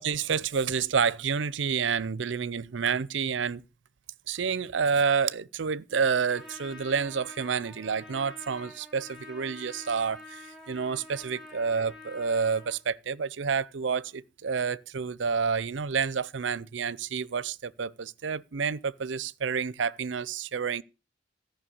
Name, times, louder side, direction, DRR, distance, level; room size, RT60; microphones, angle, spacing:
voice 1, 0.0-3.6 4.3-20.8, right 6 dB, 75° right, 0.6 m, -29 dB
Trumpet, 6.3-12.8, left 2 dB, ahead, 5.4 m, -47 dB
14.0 x 5.7 x 8.6 m
head